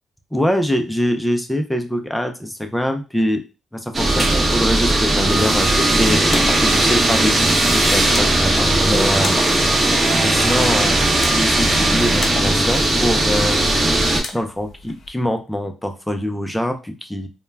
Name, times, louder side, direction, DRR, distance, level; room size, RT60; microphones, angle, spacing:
voice 1, 0.3-3.4 3.7-6.2 6.6-9.4 10.2-13.9 14.3-17.3, equal, 5° left, 6 dB, 0.4 m, -24 dB
sound 1, 3.9-14.2, right 1 dB, 30° right, 0.7 m, -17 dB
sound 2, 11.9-15.1, left 3 dB, 55° left, 0.6 m, -36 dB
2.2 x 2.1 x 3.3 m, 0.30 s
cardioid pair, 90°, 0 cm